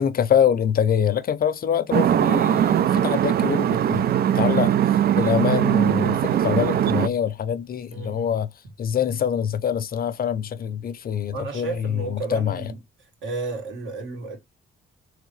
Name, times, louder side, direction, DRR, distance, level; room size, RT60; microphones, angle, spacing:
voice 1, 0.0-4.1 4.3-8.5 8.8-12.7, left 8 dB, 50° left, 0.6 m, -25 dB
sound 1, 1.9-7.1, right 10 dB, 55° right, 0.4 m, -20 dB
voice 2, 7.9-8.4 11.3-12.8 13.2-14.4, right 3 dB, 70° right, 2.5 m, -32 dB
3.7 x 3.3 x 3.1 m
cardioid pair, 90°, 20 cm